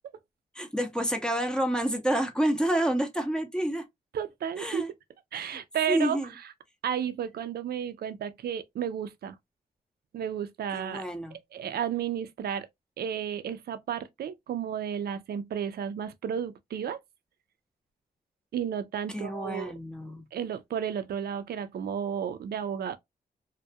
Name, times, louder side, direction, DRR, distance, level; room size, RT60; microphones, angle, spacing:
voice 1, 0.5-3.9 4.6-4.9 5.3-5.6 5.9-6.3 10.7-11.4 19.1-20.3, right 1 dB, 5° left, 0.6 m, -29 dB
voice 2, 4.1-4.8 5.3-6.2 6.8-9.4 10.1-11.0 11.3-12.7 13.0-17.0 18.5-19.7 20.3-23.0, right 8 dB, 70° right, 0.4 m, -32 dB
2.2 x 2.1 x 2.6 m
cardioid pair, 95°, 17 cm